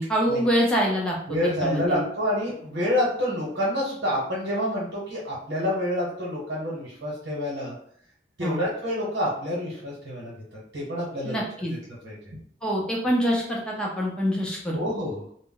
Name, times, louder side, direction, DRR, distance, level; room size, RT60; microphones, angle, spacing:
voice 1, 0.0-2.0 8.4-8.6 11.2-11.7 12.6-14.8, equal, 5° left, -3 dB, 0.5 m, -25 dB
voice 2, 1.3-7.7 8.4-10.3 10.7-11.4 11.7-11.8 12.0-12.1 14.7-15.2, equal, 80° right, -6 dB, 0.9 m, -28 dB
2.1 x 2.1 x 3.7 m, 0.65 s
head